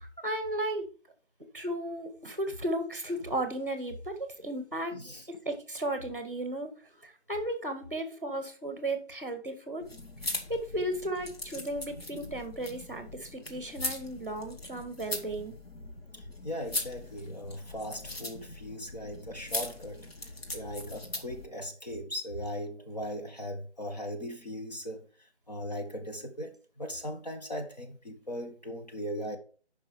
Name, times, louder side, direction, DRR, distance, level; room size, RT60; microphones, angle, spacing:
voice 1, 0.2-0.9 1.5-5.0 5.3-6.7 7.3-9.8 10.2-15.5, right 1 dB, 15° right, 1.2 m, -34 dB
voice 2, 4.9-5.3 16.4-20.1 20.5-25.1 25.5-29.4, equal, 40° left, 1.5 m, -38 dB
sound 1, 9.8-21.5, left 2 dB, 60° left, 1.9 m, -40 dB
9.6 x 5.5 x 4.8 m
figure-of-eight pair, 180°, 34 cm